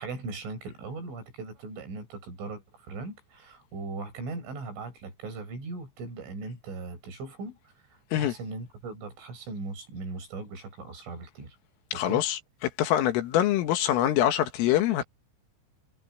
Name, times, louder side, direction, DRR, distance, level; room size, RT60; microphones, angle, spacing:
voice 1, 0.0-11.6 11.9-12.2, right 3 dB, 70° right, 9.7 m, -39 dB
voice 2, 12.0-12.4 12.8-15.0, left 12 dB, 80° left, 4.4 m, -24 dB
omnidirectional pair, 5.8 m